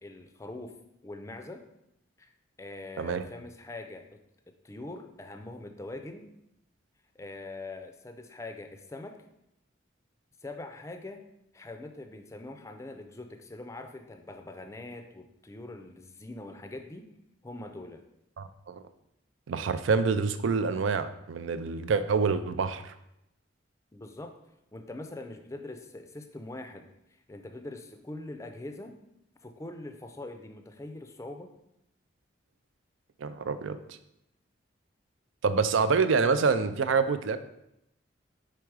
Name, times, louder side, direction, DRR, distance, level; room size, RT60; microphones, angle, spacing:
voice 1, 0.0-0.8 1.0-1.6 2.2-2.3 2.6-4.1 4.5-6.3 7.2-9.2 10.4-11.2 11.5-17.1 17.4-18.0 23.9-24.4 24.7-26.9 27.3-29.0 29.4-31.5, left 2 dB, 15° left, 6 dB, 0.4 m, -43 dB
voice 2, 18.4-18.8 19.5-22.9 33.2-33.8 35.4-37.4, right 5 dB, 80° right, 11 dB, 0.4 m, -26 dB
4.9 x 4.7 x 4.6 m, 0.83 s
head